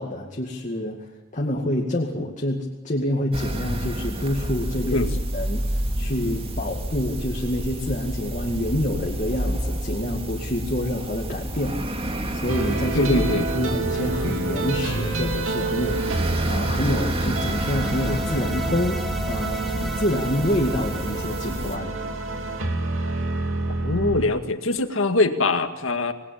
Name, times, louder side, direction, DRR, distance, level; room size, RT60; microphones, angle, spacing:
voice 1, 0.0-5.0 5.3-11.8 12.3-13.1 13.5-21.9, left 1 dB, 40° left, 0 dB, 2.3 m, -27 dB
sound 1, 3.3-21.8, right 1 dB, 30° right, 2.3 m, -30 dB
sound 2, 12.5-24.3, right 2 dB, 80° right, 2.9 m, -28 dB
voice 2, 12.9-13.5 23.8-26.1, left 2 dB, 75° left, 7 dB, 2.0 m, -23 dB
sound 3, 17.2-22.4, left 2 dB, ahead, 2.0 m, -38 dB
27.0 x 20.0 x 8.8 m, 1.1 s
head